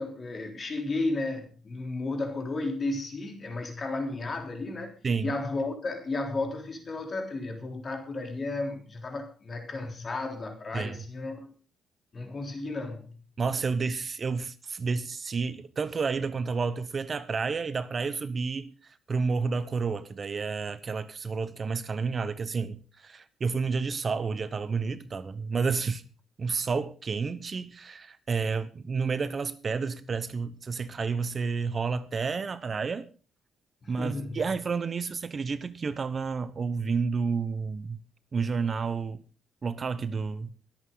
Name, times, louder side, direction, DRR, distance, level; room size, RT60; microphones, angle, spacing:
voice 1, 0.0-11.5 12.1-13.2 33.8-34.4, left 2 dB, 40° left, 3.5 m, -33 dB
voice 2, 5.0-5.3 10.7-11.0 13.4-26.0 26.4-33.1 33.9-38.0 38.3-39.2 39.6-40.5, right 5 dB, 40° right, 1.0 m, -30 dB
22.5 x 8.5 x 3.9 m
cardioid pair, 90°, 0 cm